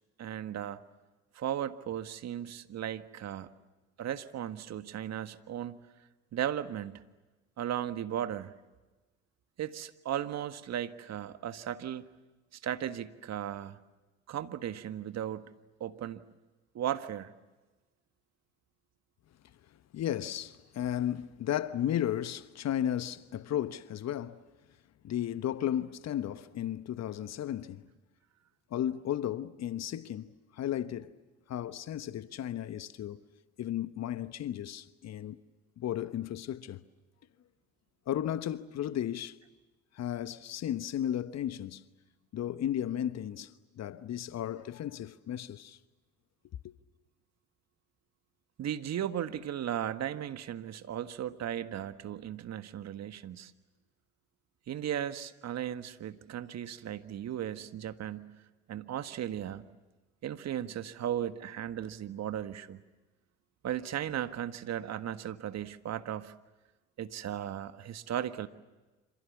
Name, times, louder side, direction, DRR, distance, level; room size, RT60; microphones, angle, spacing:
voice 1, 0.2-0.8 1.3-3.5 4.0-5.8 6.3-7.0 7.6-8.5 9.6-12.1 12.6-13.8 14.3-15.5 15.8-16.2 16.7-17.3 48.6-53.5 54.7-58.4 58.7-59.7 60.2-62.8 63.6-66.3 67.0-68.5, right 10 dB, 50° right, 1.6 m, -36 dB
voice 2, 19.9-24.4 25.0-27.9 28.7-30.3 30.5-31.1 31.5-33.2 33.6-35.4 35.8-36.8 38.1-39.4 39.9-41.8 42.3-45.8 46.6-46.7, left 11 dB, 50° left, 1.2 m, -34 dB
27.5 x 27.0 x 7.3 m
hypercardioid pair, 60°, 34 cm